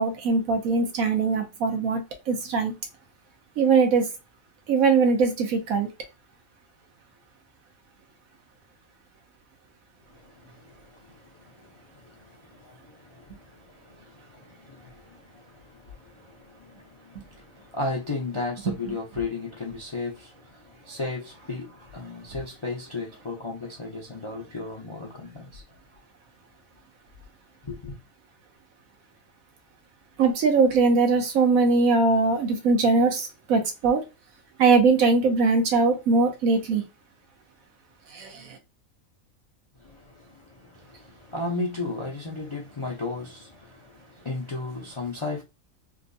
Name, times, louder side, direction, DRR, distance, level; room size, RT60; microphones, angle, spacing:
voice 1, 0.0-2.7 3.6-4.1 4.7-5.9 18.7-18.8 30.2-34.0 34.6-36.8 38.1-38.6, right 4 dB, 85° right, 1.3 m, -21 dB
voice 2, 10.1-25.6 27.7-28.0 39.8-45.4, left 3 dB, 45° left, 0.4 m, -35 dB
3.5 x 2.6 x 2.6 m
omnidirectional pair, 1.4 m